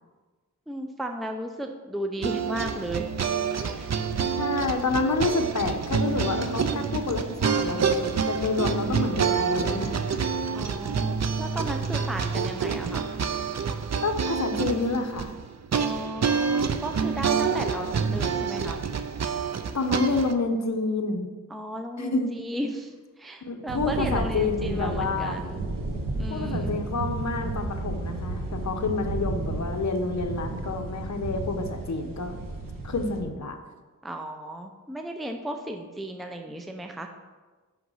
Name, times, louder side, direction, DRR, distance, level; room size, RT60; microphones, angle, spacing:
voice 1, 0.7-3.1 3.7-3.9 10.5-13.1 15.7-18.8 21.5-25.7 26.2-26.7 34.0-37.1, right 1 dB, ahead, 4 dB, 0.6 m, -35 dB
sound 1, 2.2-20.3, right 6 dB, 55° right, 0.6 m, -27 dB
voice 2, 4.4-10.1 14.0-15.3 19.7-21.3 22.0-22.4 23.4-25.4 26.3-32.3 32.8-33.6, left 3 dB, 55° left, 5 dB, 1.0 m, -28 dB
sound 2, 23.7-33.2, right 2 dB, 90° right, 1.1 m, -32 dB
6.5 x 5.7 x 5.7 m, 1.3 s
wide cardioid pair, 65°, 33 cm